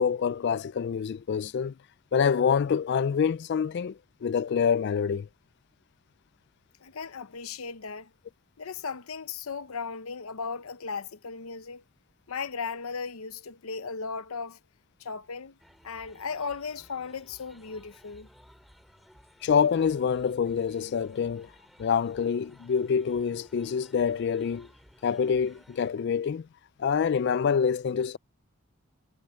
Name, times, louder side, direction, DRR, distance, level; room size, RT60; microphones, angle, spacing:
voice 1, 0.0-1.7 2.1-5.3 19.4-21.5 21.8-24.7 25.0-26.5 26.8-28.2, left 6 dB, 50° left, 0.3 m, -26 dB
voice 2, 6.8-8.1 8.6-11.8 12.3-14.6 15.0-15.6 15.8-18.3, left 5 dB, 85° left, 0.8 m, -36 dB
sound 1, 15.6-25.9, equal, ahead, 4.0 m, -57 dB
head